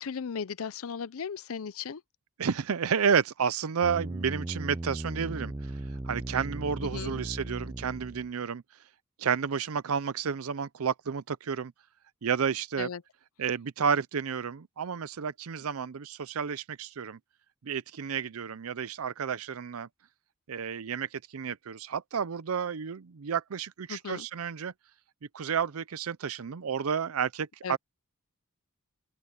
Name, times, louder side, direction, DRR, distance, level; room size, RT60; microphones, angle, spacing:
voice 1, 0.0-2.0 6.8-7.2 12.8-13.0 23.9-24.3 27.6-27.8, left 6 dB, 70° left, 0.5 m, -36 dB
voice 2, 2.4-5.5 6.1-8.6 9.2-11.7 12.2-12.9 13.4-17.2 17.6-19.9 20.5-24.7 25.3-27.8, right 6 dB, 75° right, 0.5 m, -31 dB
sound 1, 3.8-8.3, right 1 dB, 15° right, 0.5 m, -37 dB
open air
head